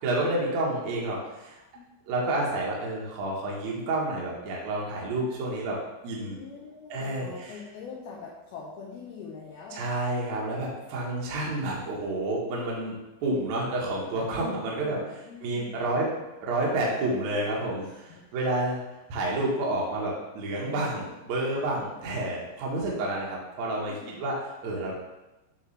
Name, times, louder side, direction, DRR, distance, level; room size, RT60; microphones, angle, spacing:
voice 1, 0.0-1.6 2.1-5.8 6.0-6.4 6.9-7.6 9.7-16.1 16.4-18.8 19.1-24.4 24.6-24.9, right 2 dB, 80° right, -4 dB, 1.6 m, -29 dB
voice 2, 6.2-9.9 14.3-16.0 17.8-18.4 23.9-24.2, left 5 dB, 90° left, -4 dB, 2.1 m, -44 dB
8.9 x 3.3 x 3.2 m, 1.0 s
omnidirectional pair, 5.3 m